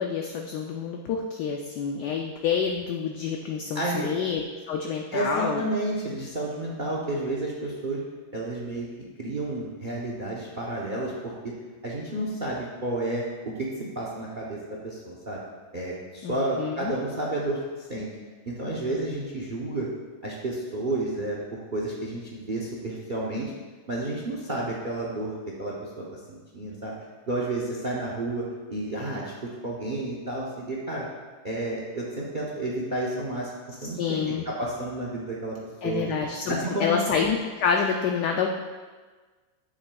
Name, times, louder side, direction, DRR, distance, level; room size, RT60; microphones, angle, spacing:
voice 1, 0.0-5.6 16.2-16.9 34.0-34.4 35.8-38.5, left 6 dB, 70° left, 2 dB, 1.0 m, -28 dB
voice 2, 3.7-4.2 5.1-8.0 8.3-8.9 9.2-11.3 11.8-13.2 13.6-13.7 14.0-15.4 15.7-18.1 18.4-19.9 20.2-23.5 23.9-26.9 27.3-28.4 28.7-29.3 29.6-31.1 31.4-33.5 33.8-35.6 35.8-36.0 36.5-37.0, right 2 dB, 45° right, -3 dB, 0.6 m, -31 dB
9.6 x 7.5 x 2.3 m, 1.4 s
omnidirectional pair, 2.1 m